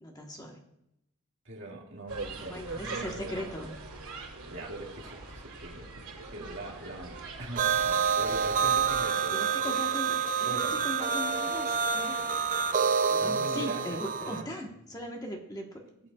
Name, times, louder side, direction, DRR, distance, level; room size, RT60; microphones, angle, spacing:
voice 1, 0.0-0.6 2.5-3.7 9.3-12.3 13.1-15.8, left 1 dB, 15° left, 1 dB, 1.2 m, -39 dB
voice 2, 1.5-3.7 4.5-6.0 6.3-9.7 10.4-10.7 13.2-14.5, right 1 dB, 55° right, -1 dB, 2.1 m, -42 dB
sound 1, 2.1-9.1, right 3 dB, 85° right, 4.6 m, -42 dB
sound 2, 7.6-14.4, right 6 dB, 35° right, 0.4 m, -28 dB
19.0 x 8.2 x 2.4 m, 0.82 s
head